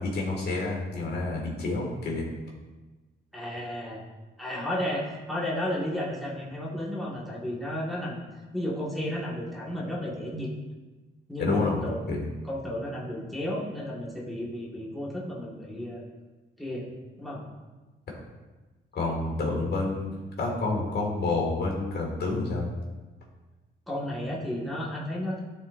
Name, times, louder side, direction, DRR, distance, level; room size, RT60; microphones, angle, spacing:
voice 1, 0.0-2.3 11.4-12.3 18.1-18.2 18.9-22.7, left 3 dB, 55° left, -1 dB, 2.2 m, -29 dB
voice 2, 3.3-4.0 4.4-8.2 8.5-10.5 11.3-12.0 12.4-16.0 16.6-16.9 17.2-17.4 23.9-25.4, left 1 dB, ahead, -6 dB, 1.8 m, -33 dB
13.0 x 4.3 x 2.7 m, 1.2 s
cardioid pair, 90°, 20 cm